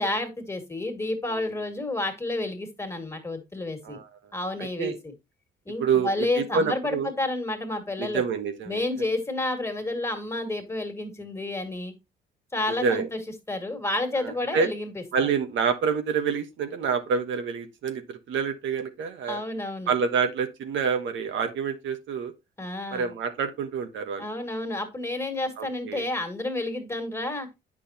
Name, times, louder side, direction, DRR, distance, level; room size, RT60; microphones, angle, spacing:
voice 1, 0.0-4.0 4.3-5.1 5.7-8.2 8.7-11.9 12.5-13.2 13.5-14.9 15.2-15.3 19.3-19.9 22.6-23.1 24.2-27.5, left 2 dB, 15° left, 2.1 m, -30 dB
voice 2, 4.6-5.0 5.8-7.1 8.0-8.8 12.7-13.1 14.2-14.7 15.1-19.4 19.9-22.3 22.9-24.3 25.6-26.0, right 6 dB, 75° right, 1.2 m, -27 dB
8.5 x 6.1 x 2.8 m
cardioid pair, 90°, 20 cm